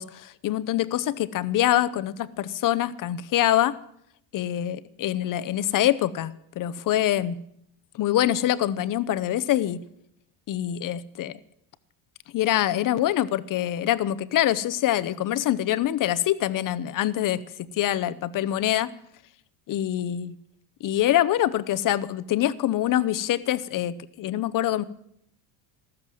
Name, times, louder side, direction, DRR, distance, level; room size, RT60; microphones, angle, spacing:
voice 1, 0.0-3.8 4.3-7.4 8.0-9.8 10.5-11.3 12.3-18.9 19.7-20.4 20.8-24.8, left 12 dB, 40° left, 16 dB, 0.8 m, -25 dB
14.0 x 13.5 x 7.6 m, 0.73 s
cardioid pair, 130°, 49 cm